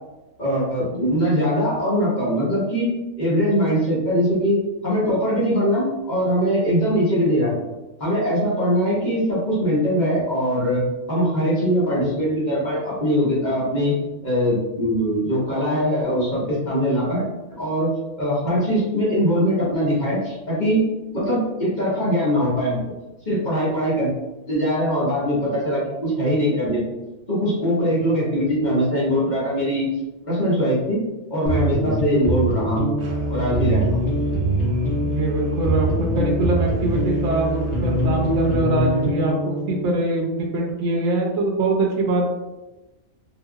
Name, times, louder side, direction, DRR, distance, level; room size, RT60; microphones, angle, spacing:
voice 1, 0.4-2.9 3.2-7.5 8.0-10.8 11.1-13.9 14.2-17.3 17.6-17.9 18.2-20.8 21.1-22.8 23.2-24.1 24.5-26.8 27.3-29.9 30.3-31.0 31.3-32.9 33.3-34.0, equal, 40° left, -7 dB, 1.1 m, -21 dB
sound 1, 31.5-39.9, right 1 dB, 60° left, 1.2 m, -24 dB
Musical instrument, 33.0-38.7, right 1 dB, 50° right, 0.5 m, -30 dB
voice 2, 35.0-42.3, right 2 dB, 65° right, -1 dB, 0.9 m, -23 dB
3.3 x 2.9 x 2.3 m, 1.1 s
omnidirectional pair, 1.4 m